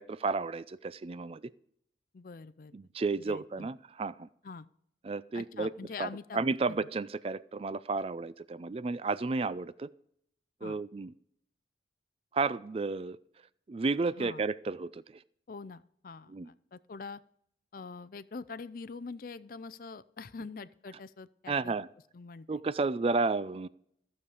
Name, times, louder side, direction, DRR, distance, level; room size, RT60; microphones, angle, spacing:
voice 1, 0.0-1.4 2.7-4.3 5.0-5.7 6.0-9.9 10.6-11.1 12.3-13.2 13.7-15.0 16.3-16.5 21.5-21.9 22.5-23.7, right 3 dB, 30° right, 17 dB, 0.3 m, -32 dB
voice 2, 2.1-2.8 3.2-3.7 4.4-4.7 5.3-6.4 6.7-6.9 10.6-10.8 14.2-14.4 15.5-17.2 17.7-21.8 22.1-22.6, left 4 dB, 50° left, 16 dB, 0.4 m, -44 dB
14.5 x 7.0 x 4.9 m, 0.69 s
head